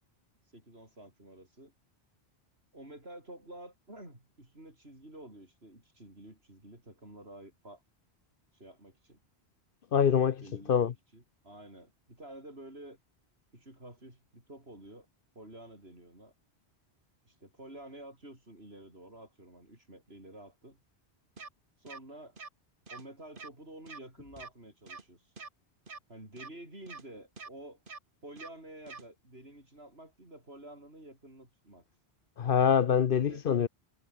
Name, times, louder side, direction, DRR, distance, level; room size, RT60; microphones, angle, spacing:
voice 1, 0.5-1.7 2.7-7.8 8.5-9.2 10.4-13.0 13.5-15.1 15.3-16.3 17.2-20.8 21.8-22.4 22.9-25.3 26.1-27.8 28.2-31.8 33.3-33.5, right 1 dB, 65° right, 8.4 m, -50 dB
voice 2, 9.9-10.4 10.7-10.9 32.4-33.7, left 7 dB, 60° left, 0.9 m, -25 dB
sound 1, 21.4-21.5 21.9-22.0 22.4-22.5 22.9-23.0 23.4-23.5 23.9-24.0 24.4-24.5 24.9-25.0 25.4-25.5 25.9-26.0 26.4-26.5 26.9-27.0 27.4-27.5 27.9-28.0 28.4-28.5 28.9-29.0, right 4 dB, 50° right, 1.9 m, -45 dB
omnidirectional pair, 1.1 m